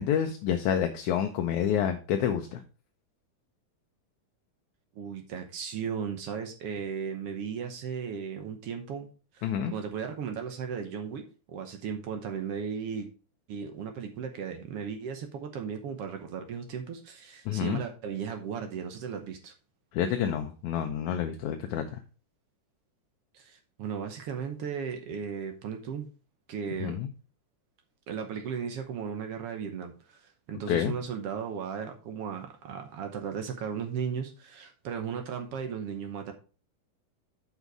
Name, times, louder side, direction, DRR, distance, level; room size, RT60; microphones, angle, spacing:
voice 1, 0.0-2.6 9.4-9.7 17.5-17.8 19.9-22.0 26.8-27.1 30.7-30.9, left 9 dB, 75° left, 5 dB, 2.0 m, -28 dB
voice 2, 4.9-9.1 9.3-11.2 11.5-13.1 13.5-19.5 23.3-26.1 26.5-27.0 28.1-36.3, right 7 dB, 65° right, 5 dB, 1.5 m, -36 dB
8.2 x 5.6 x 4.7 m, 0.36 s
omnidirectional pair, 3.7 m